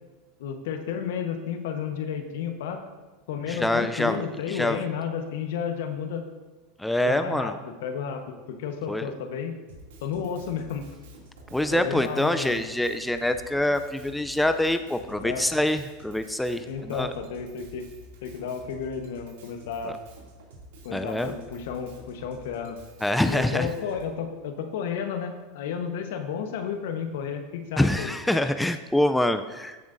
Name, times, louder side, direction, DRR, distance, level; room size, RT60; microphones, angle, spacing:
voice 1, 0.4-2.8 3.3-6.3 7.0-9.6 10.0-10.8 11.7-12.6 15.2-15.5 16.6-17.9 18.2-20.0 20.8-22.8 23.3-28.1, left 7 dB, 75° left, 6 dB, 1.1 m, -32 dB
voice 2, 3.5-4.2 4.5-4.8 6.8-7.5 8.9-9.1 11.5-17.1 19.8-19.9 20.9-21.3 23.0-23.7 27.8-29.8, left 1 dB, 5° left, 9 dB, 0.5 m, -25 dB
Drum kit, 9.7-24.1, right 1 dB, 80° right, 2.6 m, -49 dB
15.0 x 6.9 x 2.6 m, 1.2 s
hypercardioid pair, 100°, 0 cm